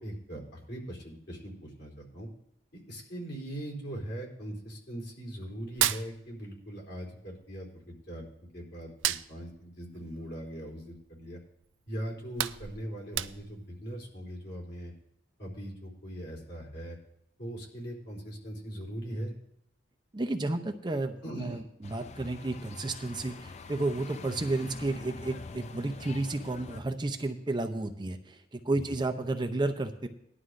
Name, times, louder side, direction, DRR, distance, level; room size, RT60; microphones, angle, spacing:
voice 1, 0.0-2.3 2.7-7.7 8.1-8.3 8.5-11.4 11.9-14.9 15.4-17.0 17.4-19.3 21.2-21.6 28.7-29.0, right 1 dB, 60° left, -2 dB, 3.4 m, -40 dB
Hands, 5.6-6.9 7.1-8.4 8.8-11.2 11.6-11.7 12.1-13.7, right 13 dB, 85° right, 0.4 m, -33 dB
voice 2, 20.1-30.1, right 2 dB, 25° right, 7 dB, 0.6 m, -32 dB
sound 1, 21.8-26.8, left 4 dB, 35° left, 0.4 m, -45 dB
19.0 x 11.0 x 2.5 m, 0.76 s
head